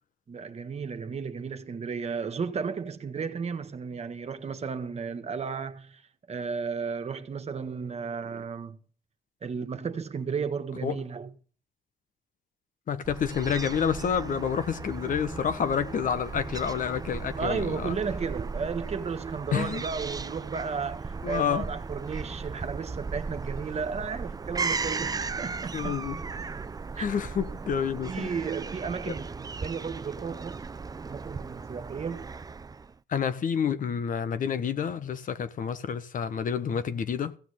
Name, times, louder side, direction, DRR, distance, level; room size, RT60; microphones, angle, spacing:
voice 1, 0.3-6.0 6.3-8.8 9.4-11.3 17.3-26.0 27.0-27.1 28.0-30.6 31.1-32.3, right 5 dB, 45° right, 1.6 m, -34 dB
voice 2, 12.9-18.0 19.5-19.8 21.2-21.6 25.7-26.2 27.0-28.3 29.1-29.2 33.1-37.4, left 7 dB, 60° left, 1.3 m, -29 dB
Fowl / Gull seagull, 13.0-32.9, right 4 dB, 25° right, 0.6 m, -36 dB
16.0 x 6.3 x 9.1 m
cardioid pair, 95°, 15 cm